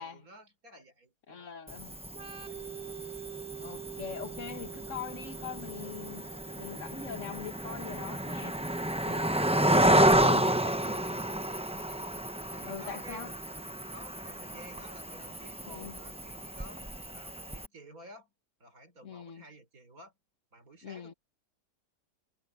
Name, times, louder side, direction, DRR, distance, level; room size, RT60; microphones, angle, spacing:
voice 1, 0.0-1.5 2.5-2.6 8.0-8.2 12.5-13.3 13.9-18.3 18.6-20.1 20.5-21.2, right 1 dB, 60° right, 4.9 m, -53 dB
voice 2, 1.3-2.0 3.6-6.3 6.6-8.6 9.0-11.3 12.6-13.3 15.7-16.0 19.0-19.5 20.8-21.1, left 7 dB, 50° left, 1.9 m, -42 dB
Cricket, 1.7-17.7, right 1 dB, 10° right, 0.3 m, -31 dB
Organ, 2.1-9.6, right 10 dB, 40° right, 1.3 m, -47 dB
omnidirectional pair, 1.7 m